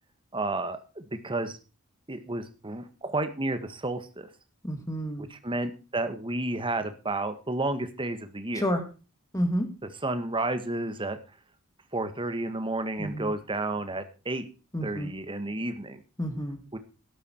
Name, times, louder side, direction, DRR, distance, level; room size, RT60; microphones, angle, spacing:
voice 1, 0.3-1.6 2.1-4.3 5.2-8.6 10.0-11.2 11.9-14.5 14.8-16.0 16.7-16.8, right 2 dB, 25° right, 9 dB, 1.6 m, -31 dB
voice 2, 4.6-5.3 8.6-8.8 9.3-9.7 13.0-13.3 14.7-15.1 16.2-16.6, equal, 15° left, 7 dB, 2.0 m, -29 dB
13.0 x 12.0 x 4.6 m, 0.33 s
head